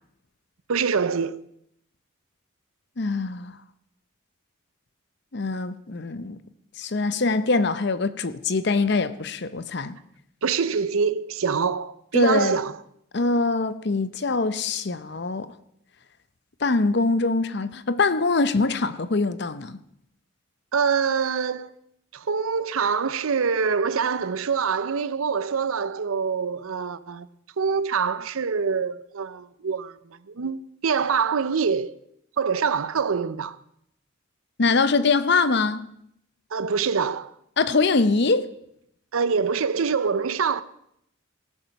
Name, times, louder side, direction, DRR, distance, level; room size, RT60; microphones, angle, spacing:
voice 1, 0.7-1.4 10.4-12.8 20.7-21.7 22.1-27.3 27.6-31.9 32.4-33.6 36.5-37.3 39.1-40.6, right 6 dB, 85° right, 0.6 m, -25 dB
voice 2, 3.0-3.6 5.3-6.4 6.8-10.0 12.1-12.6 13.1-15.5 16.6-19.8 34.6-35.9 37.6-38.5, left 3 dB, 55° left, 0.7 m, -23 dB
18.0 x 7.2 x 5.8 m
head